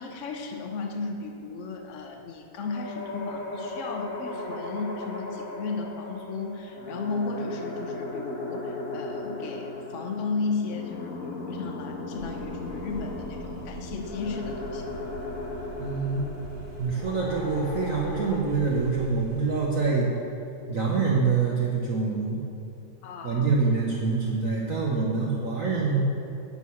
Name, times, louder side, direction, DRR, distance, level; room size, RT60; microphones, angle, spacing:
voice 1, 0.0-15.1 23.0-23.6, left 4 dB, 70° left, 4 dB, 0.7 m, -34 dB
sound 1, 2.6-18.4, left 2 dB, 50° left, 1.5 m, -36 dB
sound 2, 12.2-19.5, right 3 dB, 80° right, 2.1 m, -43 dB
voice 2, 15.8-16.3 16.8-20.1 20.7-22.4 23.2-26.0, right 4 dB, 50° right, -3 dB, 1.1 m, -25 dB
9.5 x 6.2 x 7.0 m, 2.7 s
omnidirectional pair, 2.2 m